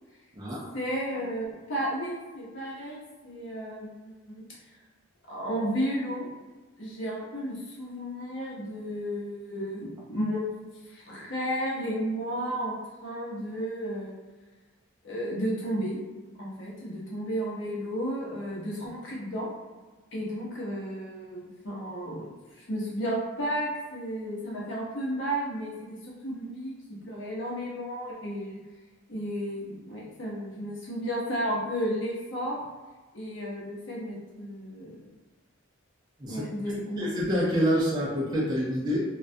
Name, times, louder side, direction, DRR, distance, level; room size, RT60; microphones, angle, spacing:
voice 1, 0.7-4.4 5.3-6.3 6.8-10.5 10.8-14.1 15.0-16.0 16.4-19.5 20.1-28.6 29.1-32.6 33.1-35.1 36.3-37.2, equal, 60° left, -5 dB, 0.7 m, -33 dB
voice 2, 37.0-39.0, equal, 20° right, -6 dB, 0.4 m, -27 dB
2.3 x 2.1 x 2.6 m, 1.3 s
head